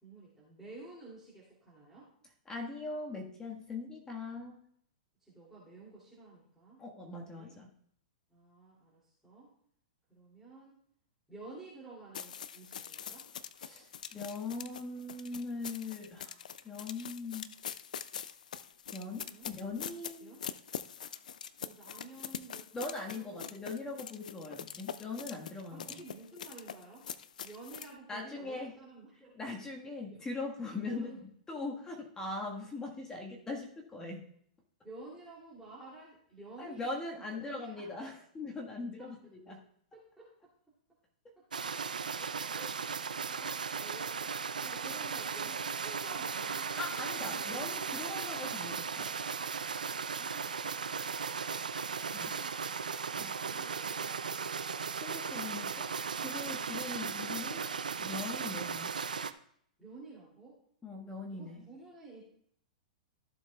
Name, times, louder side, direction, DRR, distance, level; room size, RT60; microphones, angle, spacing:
voice 1, 0.0-2.1 5.2-6.8 7.3-7.5 8.3-9.5 10.1-10.8 11.3-13.3 19.3-19.5 20.2-20.5 21.6-22.7 23.1-23.6 25.7-27.1 27.4-29.4 30.1-30.2 30.8-31.2 34.8-38.1 39.0-39.1 39.5-39.6 39.9-40.3 41.4-41.5 43.2-44.3 44.6-47.9 50.0-50.8 51.9-52.6 59.8-60.6 61.3-62.2, right 3 dB, 5° right, -7 dB, 2.7 m, -52 dB
voice 2, 2.5-4.6 6.8-7.7 13.6-16.4 16.6-17.5 18.9-20.3 22.7-26.0 28.1-28.7 29.3-31.1 31.5-34.2 36.6-39.6 42.2-42.8 46.8-49.1 52.2-52.3 53.2-53.3 55.0-57.7 58.0-59.0 60.8-61.7, left 3 dB, 15° left, 0 dB, 1.5 m, -41 dB
sound 1, 12.1-27.9, left 8 dB, 70° left, 0.4 m, -44 dB
sound 2, 41.5-59.3, right 6 dB, 85° right, 0.5 m, -37 dB
14.0 x 7.2 x 2.3 m, 0.65 s
hypercardioid pair, 115°, 4 cm